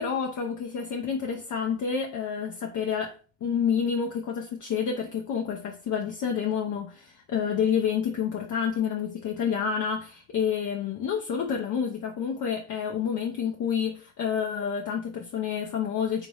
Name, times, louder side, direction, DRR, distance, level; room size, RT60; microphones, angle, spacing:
voice 1, 0.0-3.2 3.4-16.3, left 7 dB, 50° left, 0.7 m, -29 dB
3.4 x 2.7 x 3.2 m
hypercardioid pair, 55°, 40 cm